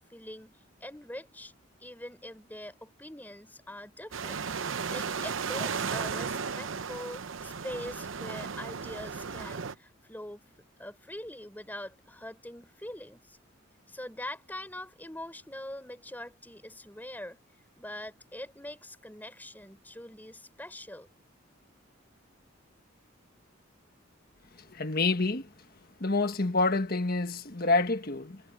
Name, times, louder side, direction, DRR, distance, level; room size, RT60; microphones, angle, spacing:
voice 1, 0.0-1.5 1.8-4.4 4.9-10.5 10.8-13.4 13.9-17.4 17.8-21.1, left 1 dB, 10° left, 4.0 m, -43 dB
sound 1, 4.1-9.7, right 5 dB, 75° right, 0.8 m, -35 dB
voice 2, 24.5-25.5 26.0-28.4, left 3 dB, 50° left, 1.5 m, -28 dB
head